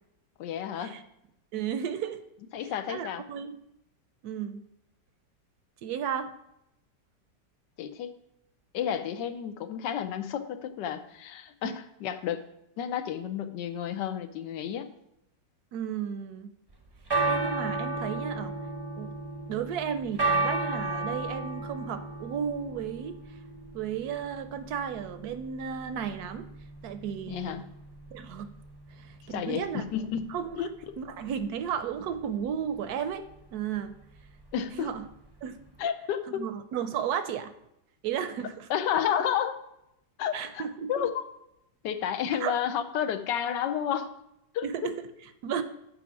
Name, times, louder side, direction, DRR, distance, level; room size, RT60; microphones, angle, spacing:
voice 1, 0.4-1.0 2.5-3.2 7.8-8.1 8.7-12.4 12.8-14.9 27.3-27.6 29.3-31.0 34.5-34.9 35.8-36.4 38.7-39.6 40.2-41.3 41.8-44.1 44.5-44.7, left 9 dB, 85° left, 9 dB, 1.3 m, -31 dB
voice 2, 1.5-2.2 2.9-3.6 4.2-4.6 5.8-6.3 11.6-11.7 15.7-16.5 17.3-18.5 19.0-19.1 19.5-23.2 23.7-26.5 26.8-27.6 28.1-28.5 29.0-29.8 30.3-30.6 31.0-33.2 33.5-33.9 34.7-35.0 35.4-35.6 36.3-37.5 38.0-38.7 40.3-41.1 42.4-42.6 44.6-45.1 45.4-45.6, right 8 dB, 70° right, 10 dB, 1.0 m, -33 dB
sound 1, 16.7-35.8, right 2 dB, 30° right, 0.4 m, -35 dB
7.0 x 4.9 x 6.0 m, 0.83 s
omnidirectional pair, 1.8 m